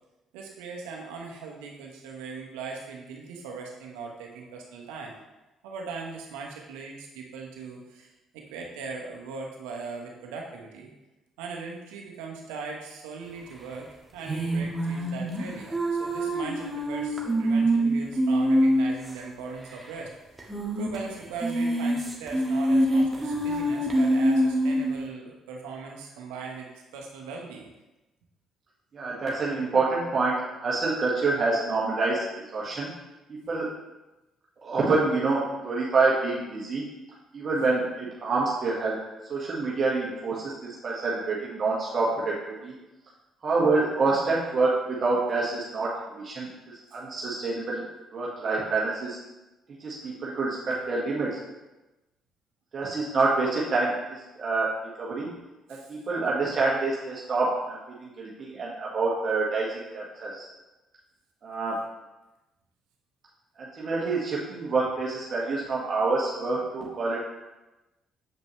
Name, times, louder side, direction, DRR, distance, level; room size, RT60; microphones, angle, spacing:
voice 1, 0.3-5.1 5.6-10.9 11.4-20.1 20.8-27.7 55.7-55.9, right 4 dB, 85° right, 0 dB, 1.1 m, -39 dB
sound 1, 14.2-19.1 19.4-19.5 19.7-19.8 20.4-21.0 21.3-24.9, right 1 dB, 20° right, 1.6 m, -25 dB
voice 2, 28.9-32.9 33.5-33.7 34.6-36.8 37.3-39.0 39.3-42.7 43.4-45.9 46.2-47.8 48.1-49.2 49.8-51.4 52.7-54.7 55.0-55.3 55.7-60.5 61.4-61.8 63.6-67.2, right 3 dB, 50° right, -5 dB, 1.6 m, -27 dB
7.9 x 5.3 x 3.2 m, 1.0 s
supercardioid pair, 60°, 0 cm